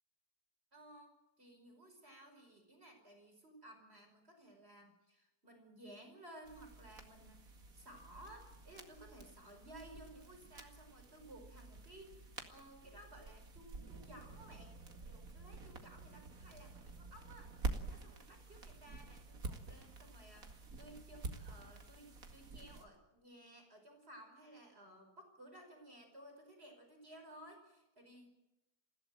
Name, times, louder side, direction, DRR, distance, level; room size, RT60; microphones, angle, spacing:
voice 1, 0.7-14.7 15.1-17.5 17.9-28.4, right 1 dB, 40° right, 3 dB, 5.7 m, -57 dB
sound 1, 6.4-22.8, right 3 dB, 60° right, 2.6 m, -48 dB
29.0 x 16.0 x 7.7 m, 0.94 s
omnidirectional pair, 1.7 m